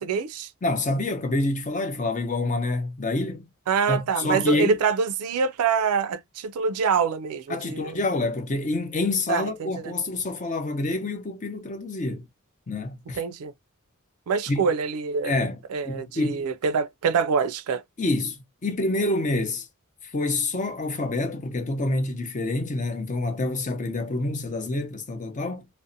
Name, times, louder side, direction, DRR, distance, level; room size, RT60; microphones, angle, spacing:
voice 1, 0.0-0.5 3.7-8.0 9.3-9.9 13.1-13.5 14.3-15.4 15.7-17.8, right 6 dB, 85° right, 0.4 m, -25 dB
voice 2, 0.6-3.5 3.9-4.7 7.5-12.3 12.7-13.2 14.5-14.7 15.2-16.5 18.0-19.7 20.0-25.7, left 2 dB, 35° left, 0.6 m, -27 dB
2.6 x 2.0 x 2.5 m
head